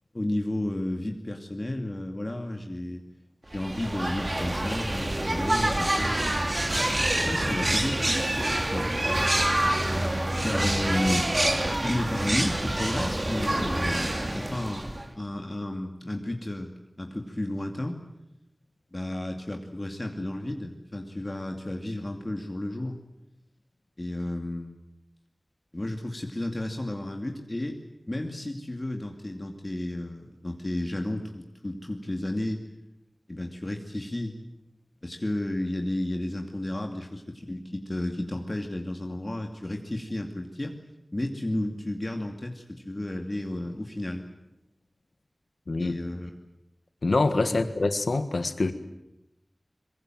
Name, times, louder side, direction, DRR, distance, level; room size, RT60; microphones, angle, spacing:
voice 1, 0.1-3.0 3.5-6.1 7.1-8.0 8.5-8.9 10.4-16.7 17.0-18.0 18.9-23.0 24.0-24.8 25.7-27.8 28.1-32.6 33.3-34.3 35.0-40.8 41.1-44.2 45.8-46.3 47.5-47.6, left 1 dB, 35° left, 3 dB, 2.5 m, -32 dB
sound 1, 3.5-15.1, right 1 dB, 40° right, 2.7 m, -27 dB
voice 2, 45.7-46.0 47.0-48.7, left 3 dB, 85° left, 10 dB, 1.5 m, -25 dB
23.5 x 21.5 x 9.2 m, 0.90 s
wide cardioid pair, 50°, 0 cm